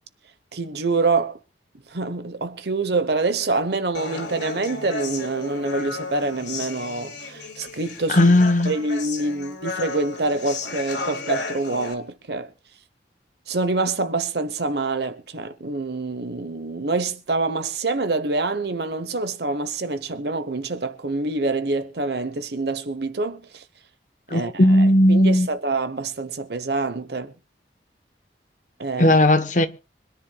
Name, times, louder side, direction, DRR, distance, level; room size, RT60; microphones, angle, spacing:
voice 1, 0.5-1.4 1.9-8.3 8.6-12.5 13.5-23.6 24.3-24.5 24.8-27.3 28.8-29.2, right 3 dB, 65° right, 1.0 m, -26 dB
Human voice, 3.9-11.9, left 3 dB, 75° left, 3.7 m, -33 dB
voice 2, 8.1-8.7 24.3-25.5 29.0-29.7, left 1 dB, 45° left, 1.0 m, -16 dB
25.0 x 10.5 x 2.3 m
head